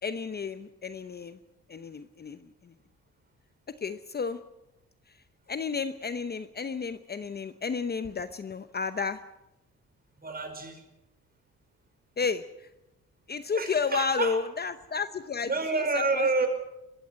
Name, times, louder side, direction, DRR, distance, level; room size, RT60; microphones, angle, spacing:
voice 1, 0.0-1.4 1.7-2.7 3.8-4.4 5.5-9.2 12.2-12.7 13.3-16.3, left 5 dB, 35° left, 11 dB, 0.8 m, -32 dB
voice 2, 10.2-10.8 13.5-14.4 15.4-16.5, right 3 dB, 30° right, 7 dB, 5.1 m, -28 dB
22.5 x 15.5 x 7.6 m, 0.93 s
cardioid pair, 90°, 30 cm